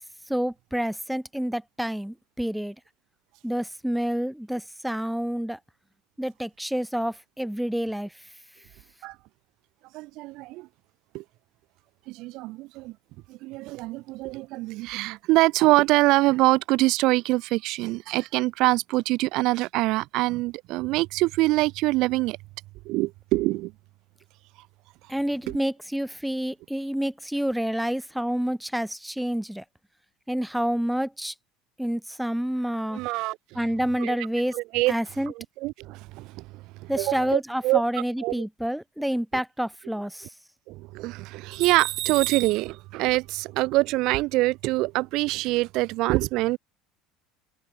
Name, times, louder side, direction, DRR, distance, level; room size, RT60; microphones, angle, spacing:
voice 1, 0.3-2.7 3.4-5.6 6.2-8.1 25.1-29.6 30.3-31.3 31.8-33.0 33.5-34.5 34.9-35.3 36.9-40.3, equal, ahead, 1.4 m, -28 dB
voice 2, 9.9-10.7 11.1-11.2 12.1-12.9 13.3-22.4 22.8-23.7 25.5-25.6 32.9-33.4 34.0-34.2 34.5-34.9 35.3-36.4 36.8-37.8 38.2-38.5 40.7-46.6, right 20 dB, 65° right, 1.7 m, -24 dB
supercardioid pair, 95°, 0 cm